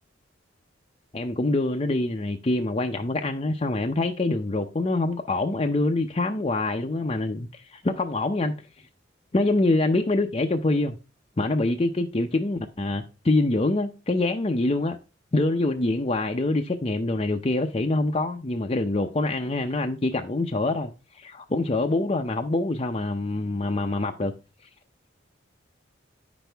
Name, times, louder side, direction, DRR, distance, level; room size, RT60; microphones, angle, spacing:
voice 1, 1.1-8.5 9.3-11.0 11.4-15.0 15.3-24.3, left 2 dB, 30° left, 0.5 m, -25 dB
9.0 x 6.1 x 3.4 m
head